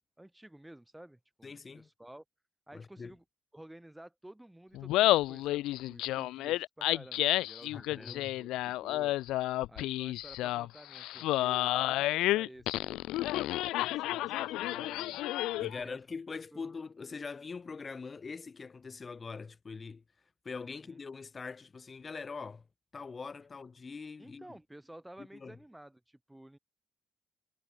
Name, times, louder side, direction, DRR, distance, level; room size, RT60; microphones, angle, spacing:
voice 1, 0.2-2.2 2.7-3.2 3.5-9.1 9.7-13.1 13.9-15.2 15.5-16.0 16.5-16.7 20.7-21.0 24.2-26.6, right 1 dB, 10° right, 4.2 m, -53 dB
voice 2, 1.4-1.9 2.7-3.1 7.7-8.4 15.6-20.0 20.4-22.7 22.9-24.6 25.2-25.6, left 4 dB, 35° left, 7.9 m, -43 dB
Laughter, 4.7-15.8, left 16 dB, 85° left, 0.9 m, -31 dB
cardioid pair, 75°, 0 cm